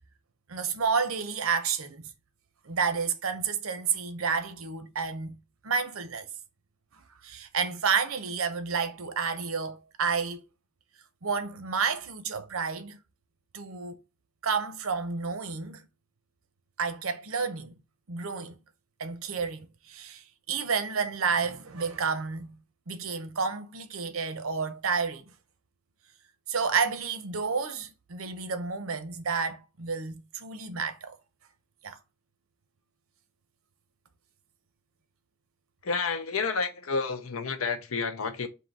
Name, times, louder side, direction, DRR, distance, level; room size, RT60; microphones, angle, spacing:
voice 1, 0.5-2.0 2.7-5.4 5.6-6.3 7.2-10.4 11.2-13.0 13.5-14.0 14.4-15.8 16.8-17.7 18.1-18.6 19.0-20.2 20.5-22.5 22.9-25.2 26.5-31.1 31.8-32.0, right 5 dB, 80° right, 0.7 m, -30 dB
voice 2, 35.8-38.5, left 4 dB, 90° left, 0.7 m, -30 dB
3.8 x 2.8 x 4.0 m
head